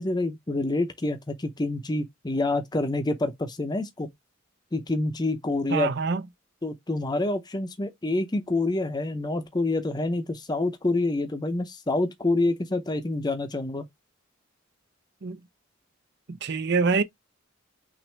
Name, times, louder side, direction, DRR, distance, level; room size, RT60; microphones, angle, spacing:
voice 1, 0.0-4.1 4.7-5.9 6.6-13.9, left 2 dB, 20° left, 0.7 m, -27 dB
voice 2, 5.7-6.2 15.2-15.4 16.4-17.0, right 4 dB, 60° right, 0.6 m, -24 dB
6.0 x 2.6 x 3.3 m
head